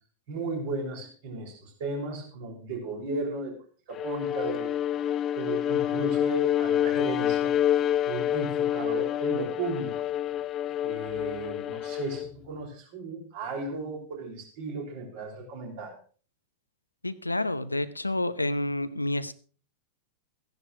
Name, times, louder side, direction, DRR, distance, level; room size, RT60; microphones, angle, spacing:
voice 1, 0.3-3.6 3.9-4.8 5.3-7.5 8.0-10.1 10.8-16.0, right 3 dB, 50° right, 0 dB, 5.9 m, -35 dB
Bowed string instrument, 3.9-12.3, left 11 dB, 30° left, 0.7 m, -27 dB
voice 2, 17.0-19.3, left 1 dB, 85° left, 14 dB, 0.8 m, -29 dB
15.0 x 10.5 x 4.7 m, 0.40 s
figure-of-eight pair, 90°, 0 cm